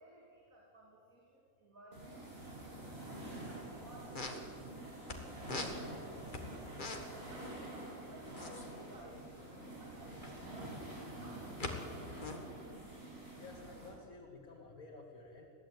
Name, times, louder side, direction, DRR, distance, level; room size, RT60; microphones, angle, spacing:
voice 1, 0.0-2.2 3.1-6.3 7.1-12.8, right 1 dB, 70° right, -3 dB, 3.4 m, -58 dB
sound 1, 1.9-13.9, right 1 dB, 45° right, 6.4 m, -48 dB
sound 2, 4.0-5.2 5.4-7.3 7.5-7.7 7.9-10.4 11.0-11.7 12.0-13.9, left 2 dB, 35° left, 1.8 m, -43 dB
voice 2, 13.3-15.5, left 3 dB, 75° left, -2 dB, 2.5 m, -53 dB
21.5 x 15.5 x 8.7 m, 2.8 s
omnidirectional pair, 1.5 m